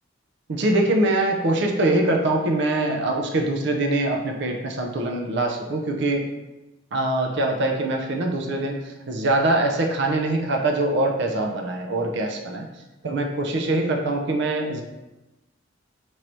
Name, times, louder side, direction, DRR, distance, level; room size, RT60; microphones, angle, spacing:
voice 1, 0.5-6.3 6.9-12.7 13.0-14.8, right 2 dB, 65° right, 2 dB, 0.5 m, -23 dB
3.1 x 2.7 x 4.5 m, 1.0 s
head